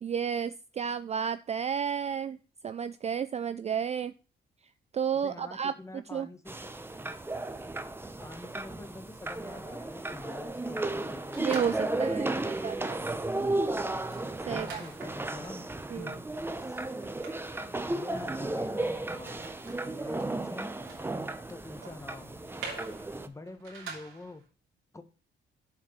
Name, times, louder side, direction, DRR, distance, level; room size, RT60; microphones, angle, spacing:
voice 1, 0.0-2.4 2.6-4.1 4.9-6.3 11.4-13.0 14.4-14.8 15.9-16.2, right 7 dB, 35° right, 13 dB, 0.4 m, -32 dB
voice 2, 5.2-7.0 8.2-12.5 12.8-12.9 14.5-16.2 16.5-16.9 17.9-19.5 19.8-20.7 21.5-22.4 23.2-24.4 24.9-25.0, left 2 dB, 15° left, 8 dB, 1.2 m, -46 dB
sound 1, 6.5-23.3, right 2 dB, 10° right, 0.8 m, -34 dB
sound 2, 11.3-12.2 12.7-12.8 13.1-24.4, right 5 dB, 80° right, 3.0 m, -48 dB
7.4 x 4.5 x 6.2 m, 0.34 s
cardioid pair, 90°, 20 cm